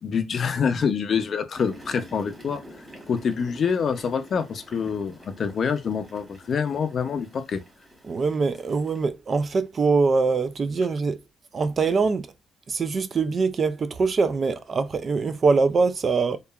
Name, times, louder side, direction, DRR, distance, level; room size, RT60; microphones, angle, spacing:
voice 1, 0.0-2.6 3.1-7.6, left 6 dB, 50° left, 0.5 m, -26 dB
sound 1, 1.5-9.1, equal, 5° right, 1.4 m, -47 dB
voice 2, 8.0-11.2 11.5-12.3 12.7-16.4, right 4 dB, 40° right, 0.3 m, -23 dB
2.7 x 2.3 x 2.3 m
cardioid pair, 90°, 0 cm